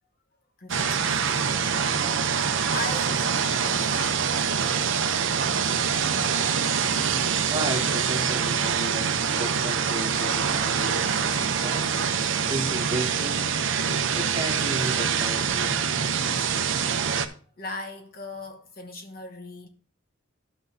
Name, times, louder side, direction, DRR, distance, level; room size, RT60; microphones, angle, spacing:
voice 1, 0.6-2.4 2.7-4.2 17.1-17.2 17.6-19.7, left 2 dB, 45° left, 1.2 m, -39 dB
sound 1, 0.7-17.3, right 6 dB, 65° right, 0.7 m, -25 dB
voice 2, 7.5-11.9 12.3-13.5 14.1-16.1, right 1 dB, 20° right, 1.4 m, -34 dB
12.5 x 6.2 x 2.8 m
head